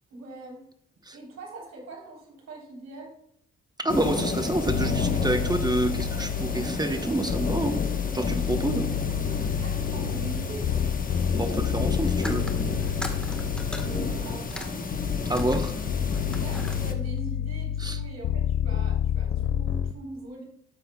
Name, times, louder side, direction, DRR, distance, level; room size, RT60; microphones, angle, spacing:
voice 1, 0.1-0.6 1.1-3.2 9.6-10.9 13.8-14.9 16.2-20.4, right 2 dB, 60° right, 0 dB, 3.6 m, -42 dB
voice 2, 3.8-7.7 8.1-8.9 11.3-12.5 15.3-15.8 17.8-18.0, right 2 dB, 15° right, 8 dB, 0.9 m, -28 dB
sound 1, 3.9-16.9, left 3 dB, 30° left, 1.1 m, -31 dB
sound 2, 4.7-6.8 7.3-14.4 14.9-19.9, left 9 dB, 45° left, 0.4 m, -29 dB
sound 3, 12.2-15.9 16.1-16.8, left 1 dB, 5° left, 1.3 m, -39 dB
12.5 x 8.4 x 2.3 m, 0.70 s
cardioid pair, 90°, 30 cm